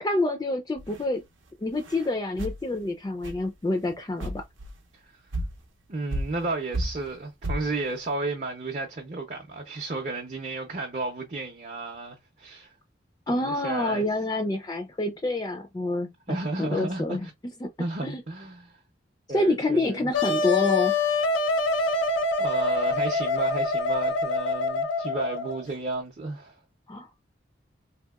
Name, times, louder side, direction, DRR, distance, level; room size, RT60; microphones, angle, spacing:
voice 1, 0.0-1.2 1.6-4.4 13.3-17.3 17.6-17.7 18.0-18.2 19.3-20.9 26.9-27.1, left 2 dB, 20° left, 0.3 m, -27 dB
sound 1, 0.8-1.0 1.7-2.1 2.4-2.6 3.2-3.4 3.9-4.0 4.2-4.8 5.3-5.6 6.1-6.5 6.7-7.1 7.4-7.7, right 1 dB, 90° right, 0.7 m, -32 dB
voice 2, 5.9-12.7 13.3-14.0 16.3-17.3 17.8-18.8 19.3-20.1 22.4-26.6, right 2 dB, 40° right, 0.6 m, -33 dB
Wind instrument woodwind instrument, 20.1-25.6, left 3 dB, 85° left, 0.5 m, -25 dB
2.8 x 2.8 x 2.3 m
head